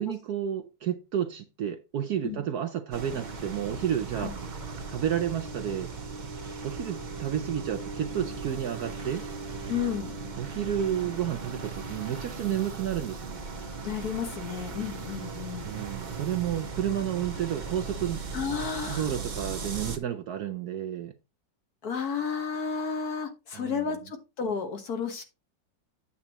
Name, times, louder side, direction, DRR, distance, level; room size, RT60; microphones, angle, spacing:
voice 1, 0.0-4.3 4.9-5.9 6.6-9.2 10.4-13.4 15.6-18.2 18.8-21.1 23.5-23.9, right 10 dB, 65° right, 1.1 m, -31 dB
sound 1, 2.9-20.0, right 4 dB, 35° right, 0.7 m, -38 dB
voice 2, 9.7-10.1 13.8-15.7 18.3-19.1 21.8-25.2, left 6 dB, 55° left, 1.7 m, -32 dB
8.6 x 7.4 x 2.9 m
omnidirectional pair, 2.0 m